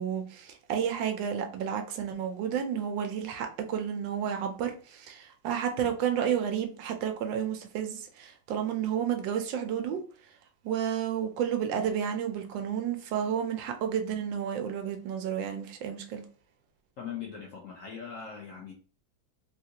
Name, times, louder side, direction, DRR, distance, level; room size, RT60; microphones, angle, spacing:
voice 1, 0.0-10.0 10.6-16.2, right 8 dB, 80° right, 1.3 m, -31 dB
voice 2, 17.0-18.7, left 7 dB, 60° left, 0.9 m, -40 dB
3.7 x 2.4 x 2.8 m
omnidirectional pair, 2.0 m